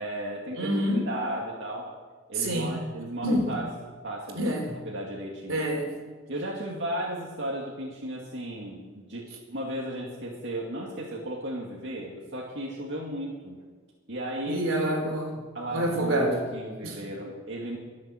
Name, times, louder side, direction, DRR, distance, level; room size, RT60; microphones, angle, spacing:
voice 1, 0.0-1.9 2.3-3.7 4.0-5.6 6.3-13.6 14.1-14.7 15.5-17.8, right 1 dB, 60° right, -3 dB, 2.4 m, -35 dB
voice 2, 0.6-1.0 2.4-2.8 3.2-3.5 4.3-4.7 5.5-6.0 14.5-15.3 15.7-16.3 16.8-17.0, right 1 dB, 75° right, 3 dB, 3.5 m, -27 dB
22.5 x 7.6 x 7.7 m, 1.4 s
head